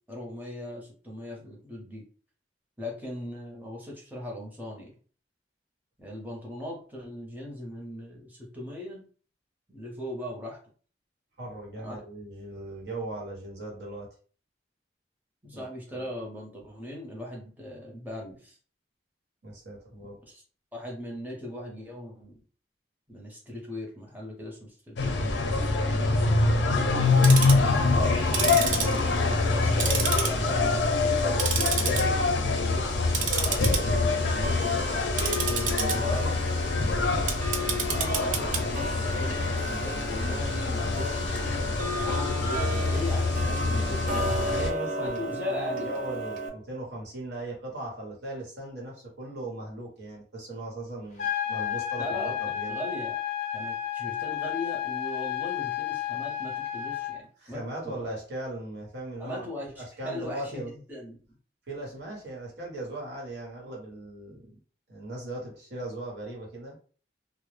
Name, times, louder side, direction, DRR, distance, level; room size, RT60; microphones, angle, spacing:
voice 1, 0.1-2.0 2.8-4.9 6.0-9.0 9.7-10.6 11.8-12.0 15.4-18.6 20.3-20.4 20.7-22.3 23.1-25.4 27.8-32.8 33.3-34.8 35.4-36.4 37.6-41.2 41.5-44.2 45.0-46.0 52.0-52.3 52.7-53.2 53.5-58.0 59.2-60.6 60.9-61.2, left 1 dB, 10° right, -2 dB, 0.6 m, -39 dB
voice 2, 11.4-14.1 15.5-16.1 19.4-20.2 25.9-26.6 35.5-36.4 44.1-52.8 57.4-60.7 61.7-64.5 64.9-66.8, right 1 dB, 75° right, -3 dB, 1.0 m, -38 dB
sound 1, 25.0-44.7, left 3 dB, 90° left, 0.5 m, -25 dB
Tick-tock, 27.0-27.7 28.2-29.5 29.8-30.7 31.0-32.0 32.4-32.7 33.1-46.5, right 3 dB, 45° right, 0.3 m, -32 dB
sound 2, 51.2-57.2, left 10 dB, 40° left, 0.5 m, -32 dB
2.0 x 2.0 x 3.1 m, 0.42 s
head